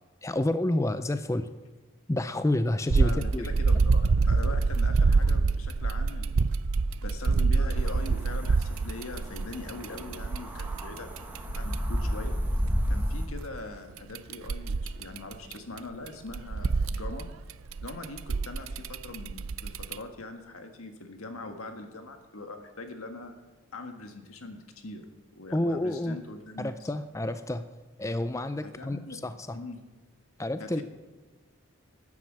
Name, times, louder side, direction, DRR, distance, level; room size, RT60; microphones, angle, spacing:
voice 1, 0.2-1.5 2.1-3.5 25.5-26.2 26.6-27.7 28.0-29.6 30.4-30.8, left 1 dB, 15° left, 11 dB, 0.4 m, -29 dB
sound 1, 2.9-11.7 14.0-15.8 16.1-19.9, right 4 dB, 80° right, 0.5 m, -26 dB
voice 2, 3.0-6.5 7.0-11.1 11.5-12.4 12.9-17.3 17.8-23.3 23.7-25.0 25.3-26.7 28.6-29.2 29.5-29.8 30.6-30.8, left 2 dB, 90° left, 6 dB, 1.6 m, -42 dB
sound 2, 7.8-13.3, equal, 10° right, 1.5 m, -32 dB
11.5 x 9.6 x 7.4 m, 1.3 s
head